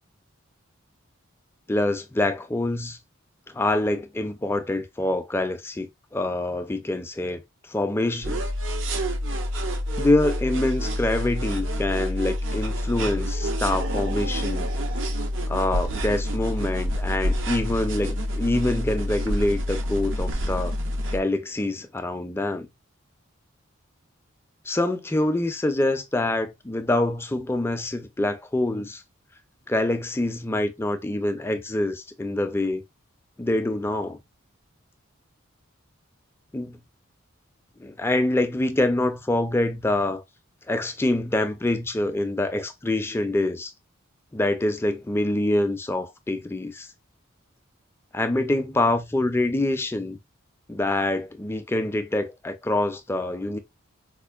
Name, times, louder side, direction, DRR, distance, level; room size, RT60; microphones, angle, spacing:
voice 1, 1.7-3.0 3.5-7.4 7.7-8.4 10.0-14.7 15.5-20.7 21.1-22.7 24.7-29.0 29.7-32.8 33.4-34.2 36.5-36.8 37.8-40.2 40.7-43.7 44.3-46.9 48.1-50.2 50.7-53.6, left 1 dB, 10° left, 0.3 m, -25 dB
sound 1, 8.2-21.2, equal, 60° right, 0.5 m, -27 dB
4.3 x 2.5 x 2.3 m
head